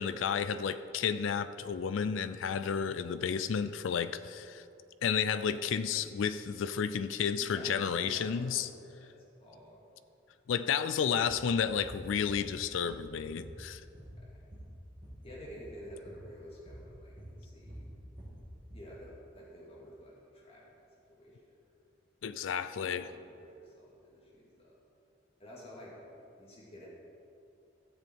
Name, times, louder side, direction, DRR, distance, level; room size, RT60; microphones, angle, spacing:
voice 1, 0.0-4.6 5.0-8.7 10.5-13.8 22.2-23.1, left 7 dB, 85° left, 12 dB, 0.4 m, -32 dB
voice 2, 7.3-9.1 9.4-9.8 14.2-14.4 15.2-17.8 18.7-20.8 21.1-21.5 23.1-24.7 25.4-26.9, equal, 30° left, -6 dB, 2.3 m, -50 dB
sound 1, 11.2-11.4 11.8-12.0 12.3-13.1 13.4-15.2 15.5-15.8 16.0-16.2 16.7-16.9 17.2-18.9, right 1 dB, 25° right, 2.6 m, -48 dB
13.5 x 7.1 x 4.6 m, 2.6 s
head